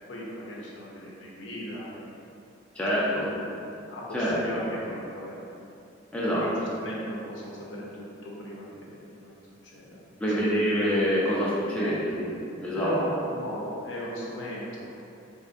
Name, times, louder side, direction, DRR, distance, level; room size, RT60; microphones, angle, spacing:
voice 1, 0.1-2.2 3.2-3.5 3.9-5.4 6.4-9.3 9.6-10.0 11.8-12.0 12.7-14.9, equal, 70° left, -5 dB, 0.7 m, -36 dB
voice 2, 2.8-3.3 4.1-4.3 6.1-6.4 10.2-12.3 12.6-12.9, equal, 5° left, -8 dB, 0.4 m, -26 dB
4.2 x 2.5 x 2.4 m, 2.6 s
head